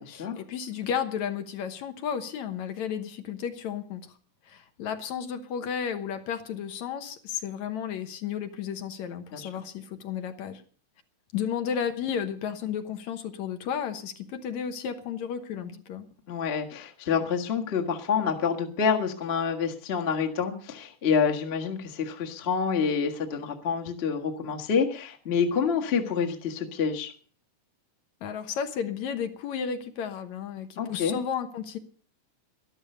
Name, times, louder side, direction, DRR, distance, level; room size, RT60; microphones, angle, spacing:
voice 1, 0.0-4.1 4.5-10.6 11.3-16.1 28.2-31.8, left 8 dB, 70° left, 8 dB, 2.4 m, -33 dB
voice 2, 16.3-27.1 30.8-31.2, left 6 dB, 30° left, 3 dB, 1.1 m, -27 dB
13.0 x 12.0 x 6.7 m, 0.43 s
omnidirectional pair, 3.6 m